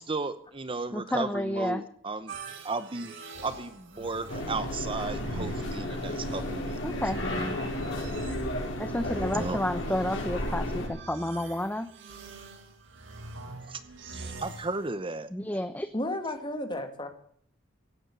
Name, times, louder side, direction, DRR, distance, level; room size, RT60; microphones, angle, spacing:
voice 1, 0.0-2.3 2.6-3.1 3.4-6.8 9.3-9.6 13.7-13.8 14.1-15.3, right 3 dB, 25° right, 12 dB, 0.8 m, -34 dB
voice 2, 0.9-1.8 6.8-7.2 8.8-11.9 15.3-15.9, left 1 dB, 10° left, 9 dB, 0.8 m, -30 dB
sound 1, 2.3-14.9, right 3 dB, 70° right, 3.9 m, -44 dB
sound 2, 4.3-10.9, left 1 dB, 75° left, 5.5 m, -33 dB
voice 3, 15.9-17.1, left 1 dB, 25° left, 7 dB, 2.4 m, -32 dB
16.5 x 9.7 x 8.2 m, 0.62 s
head